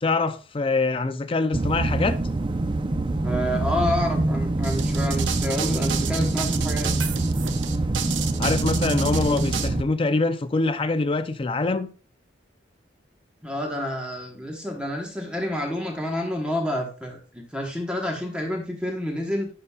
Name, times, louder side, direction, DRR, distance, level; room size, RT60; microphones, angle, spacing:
voice 1, 0.0-2.2 8.4-11.9, left 3 dB, 30° left, 0.4 m, -24 dB
sound 1, 1.5-9.8, right 2 dB, 25° right, 0.4 m, -25 dB
voice 2, 3.2-6.9 13.4-19.5, left 1 dB, 5° right, 1.0 m, -29 dB
sound 2, 4.6-9.7, right 9 dB, 75° right, 0.6 m, -31 dB
11.0 x 3.9 x 2.2 m
head